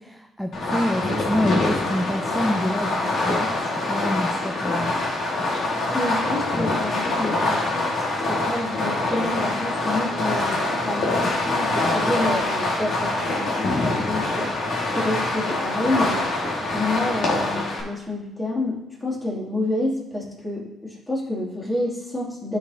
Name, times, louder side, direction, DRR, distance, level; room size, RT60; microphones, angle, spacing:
voice 1, 0.0-4.9, left 1 dB, ahead, 4 dB, 0.6 m, -27 dB
Fireworks, 0.5-17.8, left 2 dB, 60° left, 1.9 m, -24 dB
voice 2, 5.9-7.8 8.3-14.5 14.9-16.2 16.7-22.6, left 2 dB, 20° left, -4 dB, 2.6 m, -28 dB
12.0 x 4.9 x 2.8 m, 0.94 s
cardioid pair, 90°, 0 cm